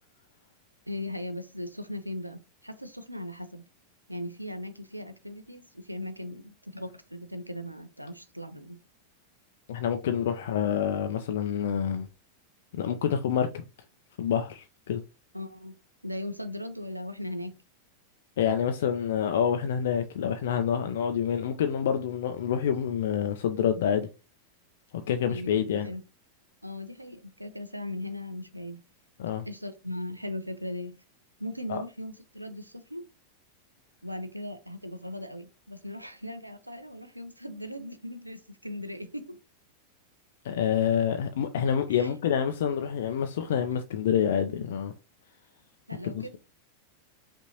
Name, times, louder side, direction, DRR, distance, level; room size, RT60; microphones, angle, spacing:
voice 1, 0.9-3.7 4.1-8.8 15.3-17.6 25.3-26.0 26.6-28.8 29.4-31.0 31.4-33.0 34.0-39.4 41.9-42.1 45.9-46.4, left 1 dB, 90° right, 0.4 m, -38 dB
voice 2, 9.7-12.1 12.7-13.6 14.2-15.0 18.4-24.1 25.1-25.9 29.2-29.4 31.7-31.8 40.4-44.9 46.0-46.4, left 8 dB, 60° left, 0.4 m, -27 dB
5.3 x 2.6 x 2.9 m
figure-of-eight pair, 90°, 0 cm